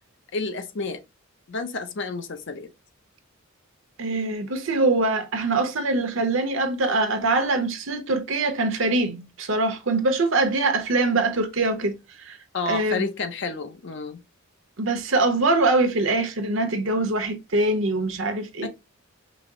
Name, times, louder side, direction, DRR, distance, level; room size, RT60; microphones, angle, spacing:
voice 1, 0.3-1.0 1.5-2.7 12.5-14.2 18.6-18.7, left 3 dB, 55° left, 0.6 m, -30 dB
voice 2, 4.0-12.4 12.7-13.1 14.8-18.7, right 2 dB, 65° right, 0.8 m, -23 dB
5.0 x 2.0 x 3.6 m
head